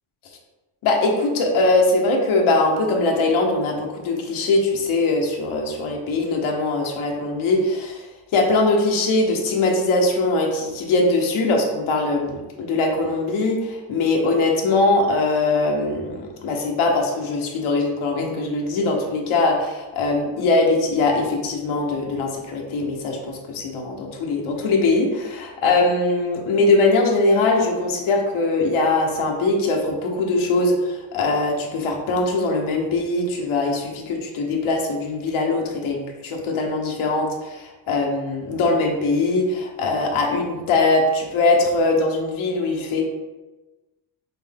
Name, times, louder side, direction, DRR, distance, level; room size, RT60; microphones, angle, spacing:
voice 1, 0.8-8.0 8.3-43.0, left 2 dB, 90° left, 1 dB, 1.0 m, -21 dB
5.9 x 2.1 x 3.4 m, 1.1 s
cardioid pair, 85°, 47 cm